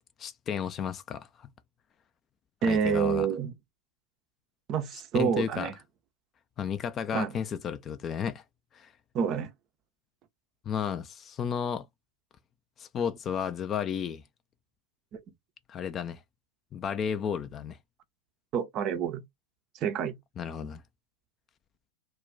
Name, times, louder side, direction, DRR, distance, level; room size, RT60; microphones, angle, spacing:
voice 1, 0.2-1.5 2.6-3.3 4.9-5.7 6.6-8.4 8.7-8.9 10.7-11.9 12.8-14.2 15.7-16.2 16.7-17.8 20.4-20.8, left 7 dB, 25° left, 0.3 m, -33 dB
voice 2, 2.6-3.5 4.7-5.7 7.1-7.3 9.1-9.5 15.1-15.2 18.5-19.2 19.8-20.1, right 7 dB, 35° right, 0.5 m, -28 dB
2.2 x 2.1 x 3.6 m
figure-of-eight pair, 90°, 0 cm